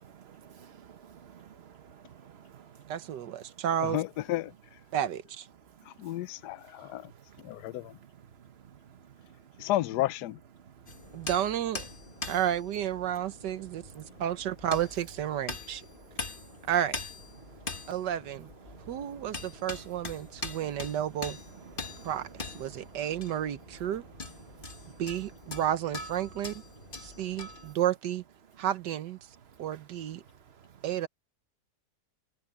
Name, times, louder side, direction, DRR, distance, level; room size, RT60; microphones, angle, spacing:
voice 1, 0.0-2.8 6.8-6.9 8.7-8.8 10.9-11.0 17.5-17.8 18.7-19.2 20.5-20.6 21.8-22.1 24.6-24.7, right 8 dB, 45° right, 1.1 m, -53 dB
voice 2, 2.9-4.0 4.9-5.5 11.1-11.9 12.3-15.8 16.7-17.0 17.9-18.5 18.9-21.4 22.0-24.0 25.0-26.6 27.0-28.2 28.6-29.2 29.6-30.2 30.8-31.1, right 10 dB, 80° right, 1.5 m, -31 dB
voice 3, 3.9-4.5 6.0-7.0 7.4-7.8 9.6-10.4, left 15 dB, 75° left, 1.2 m, -31 dB
sound 1, 10.9-27.7, left 3 dB, 30° left, 1.9 m, -43 dB
omnidirectional pair, 1.8 m